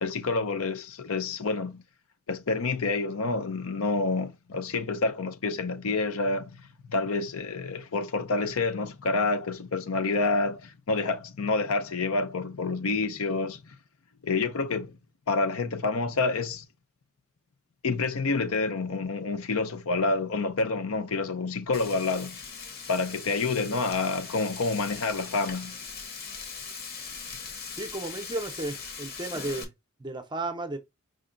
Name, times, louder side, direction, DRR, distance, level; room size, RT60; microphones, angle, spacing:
voice 1, 0.0-1.8 2.3-13.8 14.2-15.0 15.3-16.6 17.8-22.4 22.9-25.8, left 3 dB, 75° left, 0.6 m, -28 dB
Frying (food), 21.7-29.6, left 5 dB, 45° left, 1.0 m, -40 dB
voice 2, 27.8-29.7 30.0-30.8, right 2 dB, 20° right, 0.6 m, -33 dB
5.0 x 2.2 x 3.7 m
head